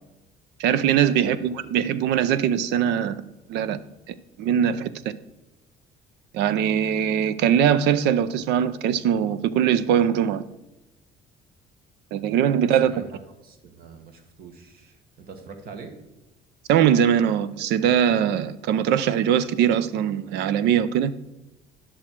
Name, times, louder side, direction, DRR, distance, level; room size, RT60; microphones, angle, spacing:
voice 1, 0.6-3.2 3.5-3.8 4.4-5.2 6.3-10.4 12.1-13.0 16.7-21.1, right 9 dB, 85° right, 0.6 m, -21 dB
voice 2, 1.2-1.5 12.7-15.9, right 5 dB, 60° right, 1.5 m, -44 dB
10.5 x 6.1 x 4.5 m
cardioid pair, 110°, 17 cm